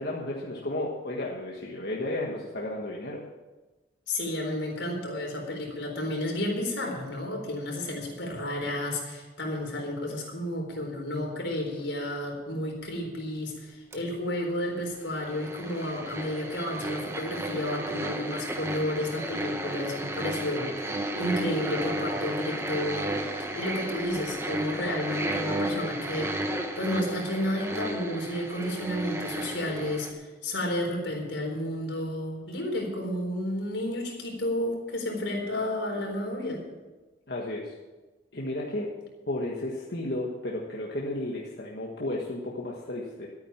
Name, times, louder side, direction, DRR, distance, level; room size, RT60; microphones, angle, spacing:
voice 1, 0.0-3.2 37.3-37.7 38.3-38.9 39.3-43.3, left 1 dB, 60° left, -3 dB, 1.6 m, -33 dB
voice 2, 4.1-26.5 26.8-36.6, left 1 dB, 80° left, 1 dB, 4.1 m, -32 dB
sound 1, 13.9-14.0 15.1-30.1, right 1 dB, 15° right, 1.2 m, -33 dB
13.0 x 9.2 x 7.3 m, 1.2 s
head